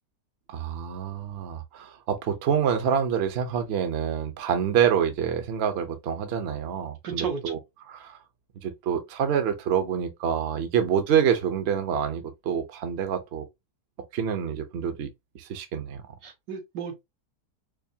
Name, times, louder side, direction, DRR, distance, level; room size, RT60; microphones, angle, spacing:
voice 1, 0.5-7.6 7.9-8.2 8.6-13.4 14.1-15.1 15.3-16.0, right 8 dB, 50° right, 0.8 m, -27 dB
voice 2, 7.0-7.4 16.2-17.0, right 6 dB, 85° right, 1.7 m, -33 dB
4.6 x 2.6 x 2.7 m
omnidirectional pair, 1.9 m